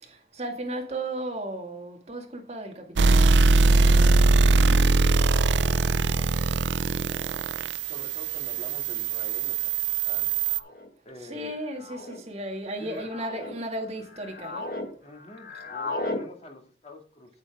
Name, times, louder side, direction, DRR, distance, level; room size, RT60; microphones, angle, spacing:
voice 1, 0.0-3.3 3.7-4.2 11.3-14.7, right 1 dB, 35° right, 1.9 m, -35 dB
sound 1, 3.0-10.6, right 3 dB, 85° right, 0.5 m, -21 dB
voice 2, 5.7-7.5 7.8-9.7 10.0-10.4 11.0-11.5 12.8-13.1 15.0-17.4, left 1 dB, 35° left, 2.0 m, -46 dB
sound 2, 8.2-8.3 9.3-9.6 10.5-10.9 11.8-12.2 12.8-13.5 14.0-14.9 15.1-16.2, left 2 dB, 55° left, 1.5 m, -35 dB
8.7 x 8.6 x 3.5 m
head